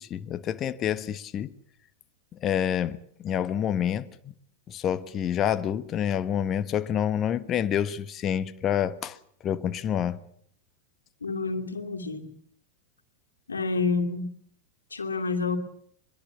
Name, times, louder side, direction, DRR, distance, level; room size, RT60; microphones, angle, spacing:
voice 1, 0.0-1.5 2.4-4.3 4.7-9.2 9.4-10.2, left 9 dB, 30° left, 1.2 m, -28 dB
voice 2, 11.2-12.3 13.5-14.3 14.9-15.6, left 4 dB, 75° left, 2.6 m, -28 dB
24.5 x 22.0 x 6.9 m
figure-of-eight pair, 90°, 0 cm